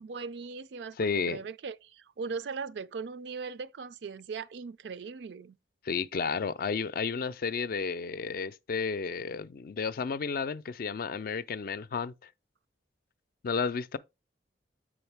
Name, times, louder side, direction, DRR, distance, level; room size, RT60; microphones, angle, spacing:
voice 1, 0.0-5.6, right 5 dB, 75° right, 0.4 m, -39 dB
voice 2, 1.0-1.4 5.9-12.1 13.4-14.0, left 5 dB, 55° left, 0.4 m, -32 dB
7.8 x 5.0 x 3.4 m
head